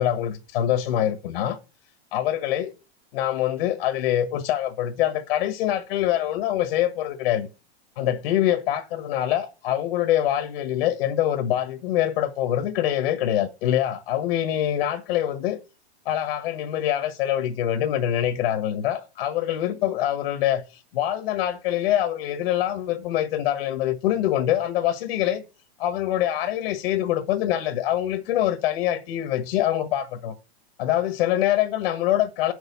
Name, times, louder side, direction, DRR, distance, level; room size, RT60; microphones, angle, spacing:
voice 1, 0.0-1.6 2.1-2.7 3.1-7.5 7.9-15.6 16.0-20.6 20.9-25.4 25.8-30.3 30.8-32.5, left 12 dB, 60° left, 1.5 m, -24 dB
8.9 x 6.6 x 7.0 m
supercardioid pair, 150°, 33 cm